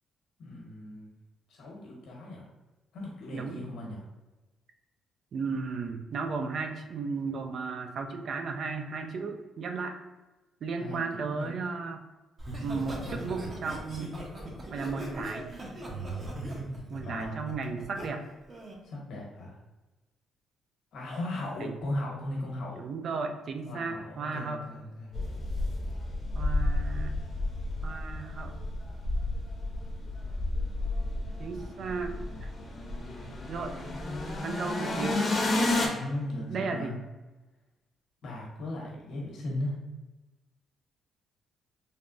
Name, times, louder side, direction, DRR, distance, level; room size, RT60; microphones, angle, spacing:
voice 1, 0.4-1.1 1.5-2.5 2.9-4.0 10.8-11.5 17.1-17.4 18.8-19.5 20.9-22.8 23.6-25.1 35.8-36.9 38.2-39.8, left 1 dB, 80° left, -3 dB, 1.0 m, -37 dB
voice 2, 3.3-3.6 5.3-10.0 10.6-12.0 12.6-14.1 14.7-15.5 16.9-18.3 21.6-21.7 22.8-24.6 26.3-27.1 27.8-28.5 31.4-32.5 33.5-33.7 34.4-35.2 36.5-37.0, right 4 dB, 60° right, 5 dB, 0.3 m, -35 dB
Laughter, 12.4-18.1 18.5-18.8, right 1 dB, 35° right, 0.8 m, -39 dB
sound 1, 25.1-35.9, left 2 dB, 40° left, 0.7 m, -31 dB
3.3 x 2.1 x 2.5 m, 1.1 s
cardioid pair, 90°, 0 cm